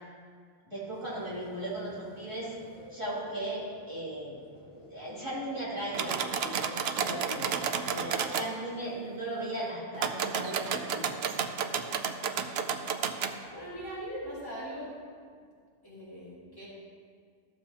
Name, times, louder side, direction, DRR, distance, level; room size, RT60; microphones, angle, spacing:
voice 1, 0.6-2.5 2.9-4.4 4.7-6.6 6.9-11.1, right 1 dB, 25° right, -10 dB, 2.7 m, -37 dB
sound 1, 0.9-8.9, left 1 dB, 40° left, 1.8 m, -51 dB
sound 2, 5.9-8.5 9.9-13.4, right 7 dB, 75° right, 0.8 m, -31 dB
voice 2, 13.5-14.9 15.8-16.7, equal, 20° left, -9 dB, 2.7 m, -40 dB
14.0 x 7.1 x 2.9 m, 2.1 s
omnidirectional pair, 1.1 m